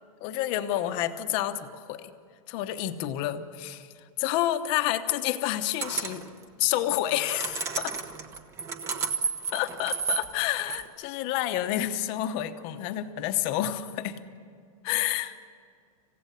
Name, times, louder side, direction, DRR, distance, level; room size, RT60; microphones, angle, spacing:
voice 1, 0.2-2.1 2.5-3.9 4.2-6.2 6.6-7.9 9.5-14.2 14.8-15.4, left 13 dB, 30° left, 9 dB, 1.0 m, -29 dB
sound 1, 5.8-6.3 7.0-10.9, right 5 dB, 15° right, 0.9 m, -32 dB
27.5 x 16.0 x 9.3 m, 2.2 s
supercardioid pair, 180°, 18 cm